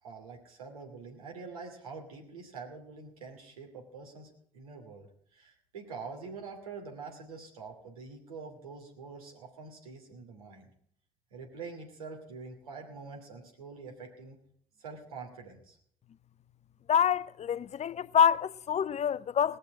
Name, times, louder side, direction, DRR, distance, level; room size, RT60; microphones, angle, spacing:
voice 1, 0.0-10.7 11.3-14.4 14.8-15.8, right 4 dB, 90° right, 2.7 m, -45 dB
voice 2, 16.9-19.6, left 8 dB, 40° left, 0.6 m, -26 dB
19.0 x 6.5 x 9.0 m
hypercardioid pair, 50°, 18 cm